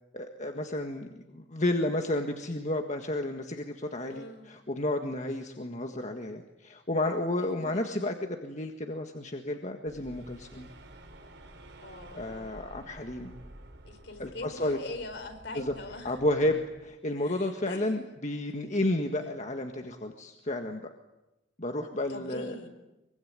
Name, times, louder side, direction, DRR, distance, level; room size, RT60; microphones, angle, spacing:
voice 1, 0.1-10.7 12.1-13.4 14.2-14.8 15.6-15.7 16.0-20.8 21.6-22.5, left 1 dB, 40° left, 4 dB, 1.7 m, -32 dB
voice 2, 4.0-4.5 7.4-8.0 11.8-12.5 13.8-16.2 17.2-17.9 22.1-22.7, left 2 dB, 65° left, 8 dB, 4.6 m, -42 dB
sound 1, 9.9-17.0, right 1 dB, 65° right, 4.7 m, -51 dB
24.0 x 24.0 x 9.6 m, 0.98 s
head